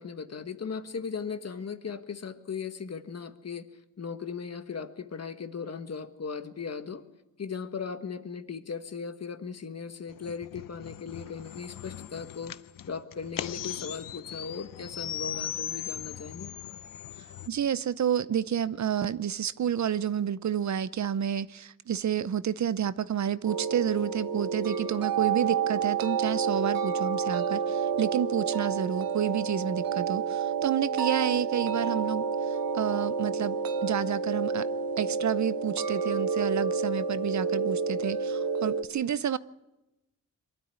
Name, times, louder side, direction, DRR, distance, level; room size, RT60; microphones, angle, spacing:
voice 1, 0.0-3.7 4.0-7.0 7.4-12.6 12.9-16.5, left 5 dB, 50° left, 1.5 m, -37 dB
sound 1, 10.1-17.5, left 10 dB, 75° left, 0.7 m, -39 dB
voice 2, 17.5-33.6 33.8-34.7 35.0-39.4, right 9 dB, 55° right, 0.6 m, -29 dB
sound 2, 23.5-38.8, right 5 dB, 85° right, 1.1 m, -29 dB
23.5 x 12.5 x 9.5 m
cardioid pair, 90°, 33 cm